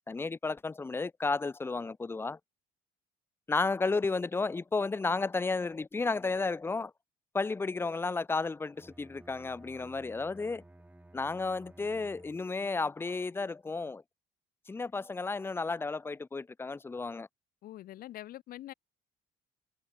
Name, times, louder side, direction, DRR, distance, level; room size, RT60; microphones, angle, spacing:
voice 1, 0.1-2.4 3.5-6.9 7.3-10.6 11.1-14.0 14.7-17.3, left 3 dB, 15° left, 0.4 m, -32 dB
Bowed string instrument, 8.7-12.8, right 1 dB, 10° right, 3.5 m, -56 dB
voice 2, 17.6-18.7, left 14 dB, 60° left, 0.6 m, -44 dB
cardioid pair, 110°, 17 cm